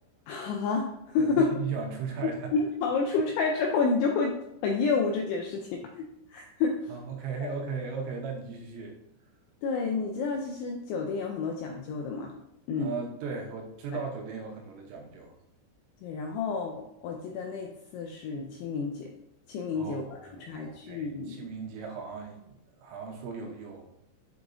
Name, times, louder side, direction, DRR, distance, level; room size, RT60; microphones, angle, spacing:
voice 1, 0.3-1.5 2.5-4.4 4.6-6.9 7.4-7.5 9.6-12.3 12.7-12.9 16.0-19.1 19.5-20.0 20.4-21.4, left 4 dB, 85° left, 1 dB, 2.7 m, -29 dB
voice 2, 1.2-2.5 6.9-9.0 12.7-15.3 19.8-23.9, right 5 dB, 85° right, 1 dB, 3.3 m, -37 dB
9.2 x 4.8 x 2.7 m, 0.82 s
omnidirectional pair, 6.0 m